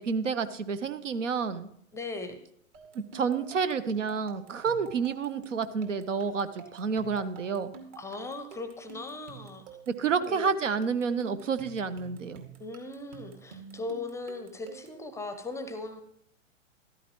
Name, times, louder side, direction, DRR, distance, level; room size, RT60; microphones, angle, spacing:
voice 1, 0.0-1.7 2.9-7.7 9.9-12.4, right 5 dB, 65° right, 12 dB, 1.1 m, -29 dB
voice 2, 1.9-2.4 8.0-9.6 10.3-10.5 12.6-16.0, left 3 dB, 5° left, 10 dB, 0.7 m, -38 dB
sound 1, 2.7-15.1, right 6 dB, 40° right, 2.3 m, -49 dB
14.0 x 13.0 x 3.1 m, 0.70 s
figure-of-eight pair, 105°, 39 cm